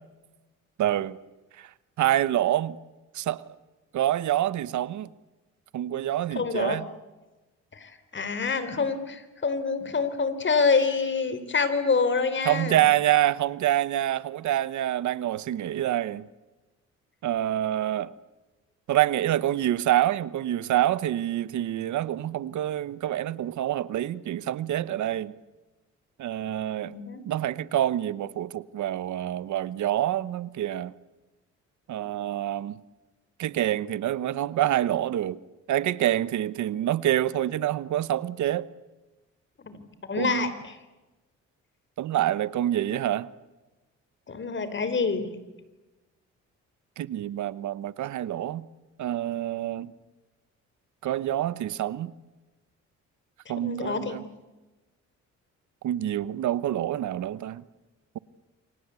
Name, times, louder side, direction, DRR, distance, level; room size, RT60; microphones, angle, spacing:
voice 1, 0.8-1.2 1.6-1.7 2.0-2.8 3.1-3.4 3.9-5.1 5.7-6.9 12.4-16.2 17.2-18.1 18.9-25.4 26.2-26.9 27.3-30.9 31.9-32.8 33.4-35.4 35.7-38.7 40.2-40.5 42.0-43.3 47.0-48.6 49.0-49.9 51.0-52.1 53.5-54.2 55.8-57.6, right 12 dB, 75° right, 1.1 m, -26 dB
voice 2, 6.3-6.8 7.7-12.8 26.8-27.3 39.6-40.8 44.3-45.3 53.6-54.2, left 4 dB, 40° left, 3.9 m, -27 dB
29.0 x 25.0 x 8.3 m
cardioid pair, 90°, 30 cm